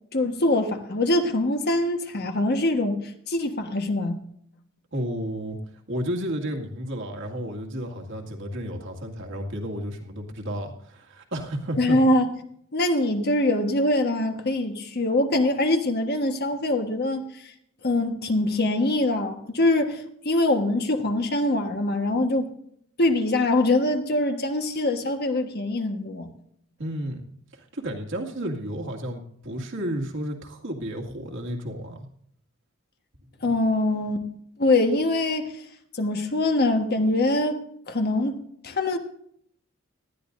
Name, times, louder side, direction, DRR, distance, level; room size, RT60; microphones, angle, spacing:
voice 1, 0.1-4.2 11.8-12.3 12.7-17.5 17.8-22.5 23.0-26.3 33.4-34.3 34.6-35.6 35.9-37.6 37.9-38.4 38.6-39.0, left 2 dB, 50° left, 5 dB, 1.4 m, -23 dB
voice 2, 4.9-5.6 5.9-12.0 26.8-32.1 33.4-33.5, equal, 65° right, 1 dB, 2.1 m, -32 dB
19.0 x 12.5 x 2.6 m, 0.68 s
head